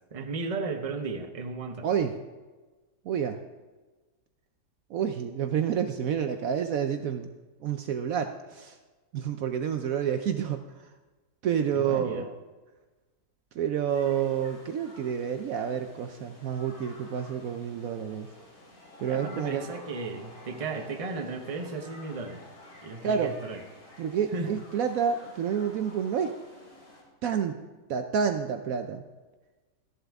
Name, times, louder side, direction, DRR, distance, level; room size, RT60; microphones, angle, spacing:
voice 1, 0.1-1.9 11.7-12.3 19.1-22.5 22.8-23.6 24.3-24.5, right 4 dB, 30° right, 5 dB, 0.8 m, -35 dB
voice 2, 1.8-2.1 3.0-3.4 4.9-7.3 7.6-8.8 9.1-10.9 11.4-12.3 13.5-18.3 19.0-19.7 23.0-23.4 24.0-26.4 27.2-27.6 27.9-29.0, right 8 dB, 65° right, 7 dB, 0.9 m, -29 dB
sound 1, 13.9-27.0, left 2 dB, 60° left, 3.5 m, -51 dB
13.5 x 11.0 x 3.5 m, 1.3 s
omnidirectional pair, 1.8 m